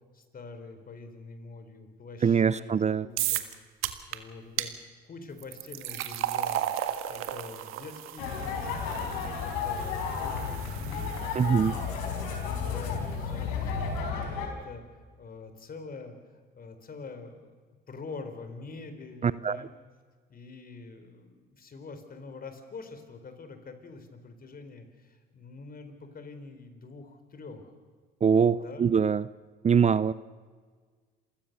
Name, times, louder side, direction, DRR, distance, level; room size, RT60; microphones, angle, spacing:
voice 1, 0.1-3.4 4.1-6.7 7.1-14.8 15.2-16.1 16.5-17.5 17.9-19.7 20.3-27.8 28.5-28.9, left 3 dB, 45° left, 8 dB, 4.4 m, -45 dB
voice 2, 2.2-3.1 11.4-11.8 19.2-19.6 28.2-29.3 29.6-30.1, right 6 dB, 30° right, 18 dB, 0.6 m, -23 dB
sound 1, 3.2-3.5 3.8-4.2 4.6-4.7 5.4-12.5, right 12 dB, 75° right, 1.6 m, -35 dB
sound 2, 8.2-14.5, left 6 dB, 90° left, 4.4 m, -32 dB
28.0 x 16.0 x 6.8 m, 1.5 s
supercardioid pair, 70°, 21 cm